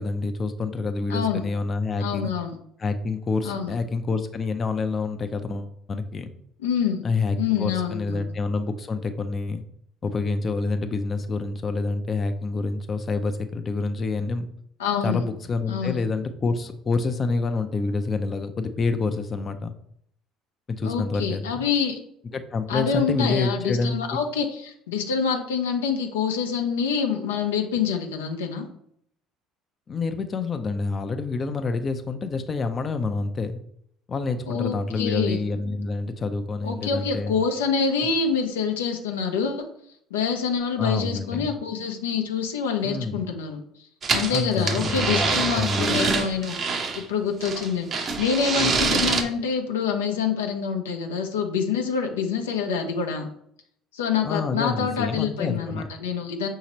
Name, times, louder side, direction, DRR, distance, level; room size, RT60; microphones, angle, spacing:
voice 1, 0.0-2.3 2.8-6.3 7.0-9.6 10.0-14.5 15.0-19.7 20.7-21.7 22.3-24.0 29.9-33.6 34.1-37.3 40.8-41.6 42.8-43.2 44.3-46.1 54.2-55.9, left 3 dB, 35° left, 7 dB, 0.4 m, -27 dB
voice 2, 1.1-1.4 2.0-2.6 3.4-3.7 6.6-7.0 7.4-8.3 14.8-15.2 15.7-16.0 20.8-22.0 22.7-28.7 34.5-35.4 36.6-39.6 40.1-43.6 44.1-53.3 53.9-56.5, left 6 dB, 90° left, 4 dB, 0.6 m, -26 dB
sound 1, 44.0-47.0 47.4-49.2, right 4 dB, 45° right, 0.7 m, -25 dB
5.6 x 2.7 x 3.0 m, 0.69 s
hypercardioid pair, 70°, 0 cm